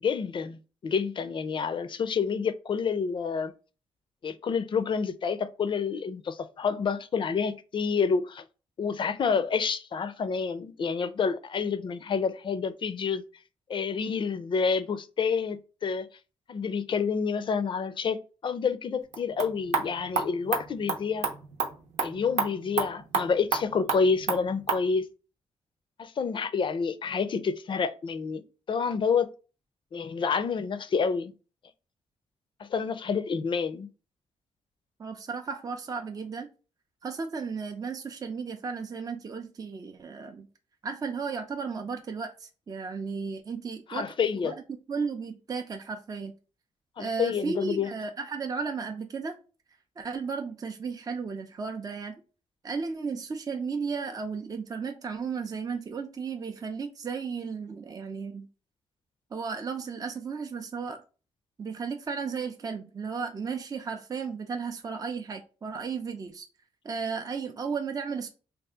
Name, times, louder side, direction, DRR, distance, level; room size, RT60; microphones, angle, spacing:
voice 1, 0.0-3.5 4.2-8.4 8.8-13.2 13.7-16.1 16.5-21.3 22.0-25.1 26.0-28.4 28.7-29.3 29.9-31.3 32.6-33.9 43.9-44.6 47.0-47.9, left 5 dB, 45° left, 0.4 m, -28 dB
sound 1, 19.0-24.9, right 5 dB, 85° right, 0.9 m, -32 dB
voice 2, 35.0-36.5 37.0-40.5 40.8-44.1 44.4-44.5 44.9-46.3 47.0-49.4 50.0-52.2 52.6-58.5 59.3-61.0 61.6-66.5 66.8-68.3, right 5 dB, 35° right, 0.5 m, -34 dB
2.7 x 2.4 x 3.4 m
cardioid pair, 90°, 11 cm